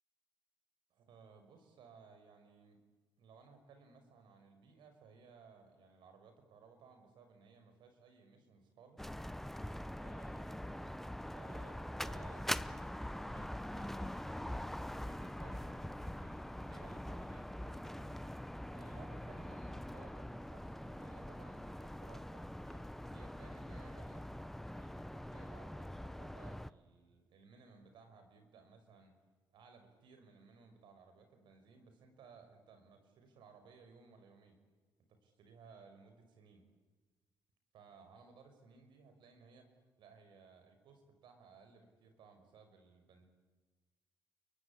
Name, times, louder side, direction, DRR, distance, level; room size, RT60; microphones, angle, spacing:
voice 1, 0.9-2.8 3.2-9.0 9.9-18.2 18.7-24.3 24.7-29.1 29.5-34.6 35.1-36.6 37.7-39.7 40.0-43.2, right 5 dB, 80° right, 7 dB, 5.9 m, -60 dB
sound 1, 9.0-26.7, left 1 dB, 5° left, 0.8 m, -44 dB
29.0 x 23.0 x 8.9 m, 1.3 s
cardioid pair, 80°, 8 cm